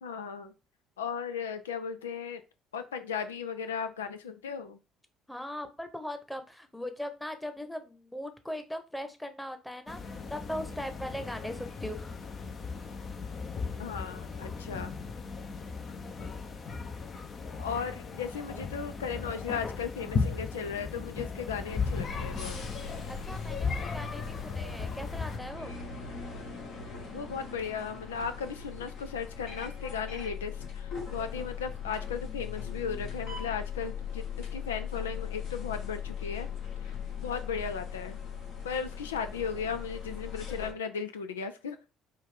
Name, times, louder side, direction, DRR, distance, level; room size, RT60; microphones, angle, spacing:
voice 1, 0.0-0.5 1.0-2.4 2.7-4.8 13.8-14.9 17.6-22.5 27.1-36.5 36.8-36.9 37.2-38.2 38.6-41.8, left 6 dB, 85° left, 9 dB, 0.4 m, -36 dB
voice 2, 5.3-12.1 23.1-25.8, left 1 dB, 5° left, 8 dB, 1.1 m, -39 dB
sound 1, 9.9-25.4, left 4 dB, 40° left, 0.9 m, -36 dB
sound 2, 21.6-40.7, left 6 dB, 65° left, 2.2 m, -39 dB
5.2 x 2.6 x 3.7 m, 0.30 s
hypercardioid pair, 55°, 0 cm